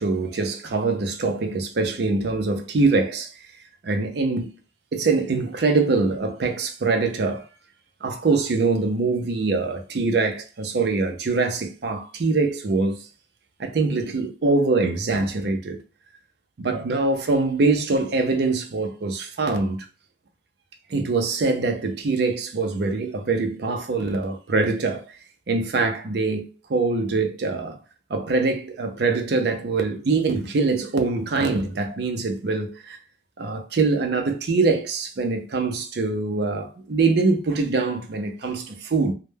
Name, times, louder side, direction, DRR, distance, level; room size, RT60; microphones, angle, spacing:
voice 1, 0.0-3.3 3.8-4.5 4.9-7.4 8.0-13.0 13.6-15.8 16.6-19.9 20.9-25.2 25.5-27.8 28.1-33.0 33.4-39.1, right 3 dB, 55° right, 0.4 m, -23 dB
2.2 x 2.1 x 3.1 m
head